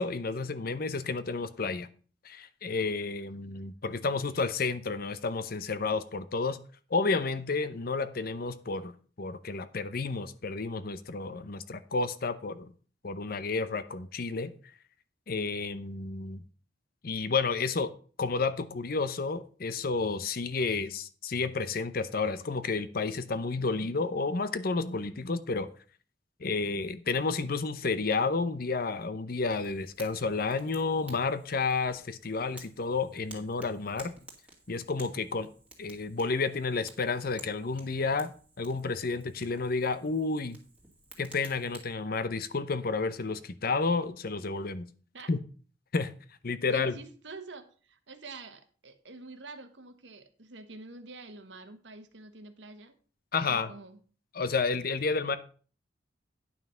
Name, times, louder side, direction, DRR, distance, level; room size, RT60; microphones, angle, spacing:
voice 1, 0.0-1.9 2.2-6.6 6.9-8.9 9.2-12.7 13.0-14.5 15.3-16.4 17.0-17.9 18.2-25.7 26.4-34.1 34.7-35.5 35.8-38.3 38.6-40.6 41.2-44.9 45.3-45.4 45.9-46.1 46.4-47.0 53.3-53.7 54.3-55.4, left 4 dB, 55° left, 0.7 m, -31 dB
Fire, 29.5-41.9, right 2 dB, 5° right, 2.1 m, -54 dB
voice 2, 46.7-52.9 53.5-54.0, right 3 dB, 90° right, 1.3 m, -47 dB
9.4 x 5.8 x 5.6 m
head